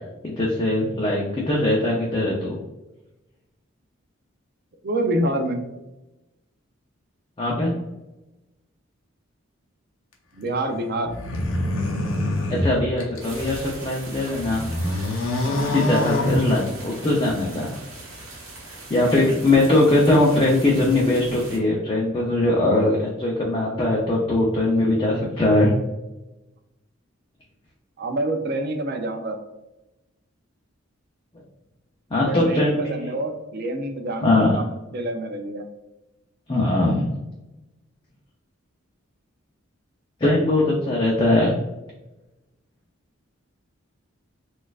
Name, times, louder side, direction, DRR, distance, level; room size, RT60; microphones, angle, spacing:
voice 1, 0.2-2.6 7.4-7.7 12.5-14.6 15.7-17.8 18.9-25.7 32.1-33.1 34.2-34.5 36.5-37.2 40.2-41.5, left 2 dB, 25° left, -3 dB, 0.5 m, -21 dB
voice 2, 4.8-5.6 10.3-11.1 28.0-29.4 32.2-35.7, right 1 dB, 50° right, 5 dB, 0.4 m, -27 dB
sound 1, 11.1-13.7 14.2-17.0, left 1 dB, 85° left, 0.7 m, -26 dB
sound 2, 13.2-21.6, right 2 dB, 75° right, 1.1 m, -40 dB
4.2 x 2.4 x 2.3 m, 0.99 s
head